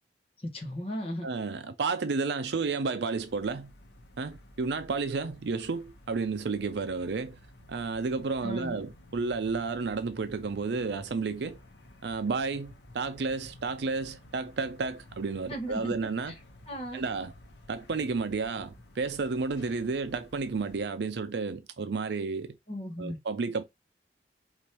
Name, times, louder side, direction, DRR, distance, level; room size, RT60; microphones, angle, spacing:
voice 1, 0.4-1.3 8.4-8.8 15.5-15.9 16.3-16.4 16.7-17.1 22.7-23.2, equal, 35° left, 1.5 m, -36 dB
voice 2, 1.2-3.7 4.2-7.4 7.7-11.6 12.0-16.3 16.9-17.3 17.7-22.6 23.0-23.6, right 4 dB, 75° right, 0.5 m, -31 dB
sound 1, 3.2-20.9, left 1 dB, 90° left, 1.0 m, -53 dB
5.0 x 3.0 x 2.9 m
head